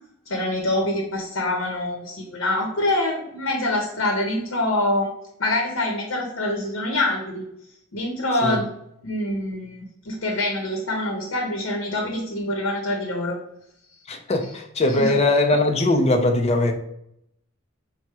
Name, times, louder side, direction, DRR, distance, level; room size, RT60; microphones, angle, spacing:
voice 1, 0.3-5.1 5.4-7.5 7.9-8.7 9.0-13.4 15.0-15.1, left 1 dB, 90° left, 0.8 m, -25 dB
voice 2, 14.1-16.7, left 2 dB, 30° left, 0.5 m, -20 dB
4.7 x 2.1 x 4.3 m
head